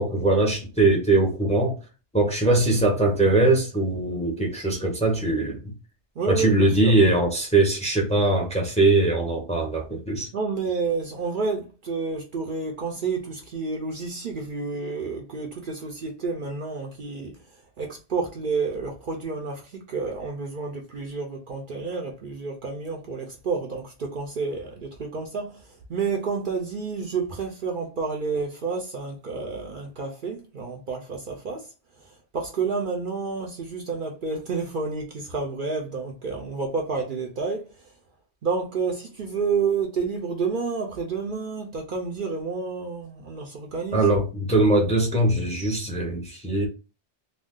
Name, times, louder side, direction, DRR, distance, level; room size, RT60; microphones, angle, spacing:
voice 1, 0.0-1.8 2.1-5.7 6.3-10.3 43.9-46.7, right 2 dB, 5° left, 0.6 m, -21 dB
voice 2, 6.2-7.0 10.3-37.9 38.4-44.1, right 4 dB, 55° right, 0.7 m, -30 dB
2.5 x 2.2 x 3.6 m
omnidirectional pair, 1.2 m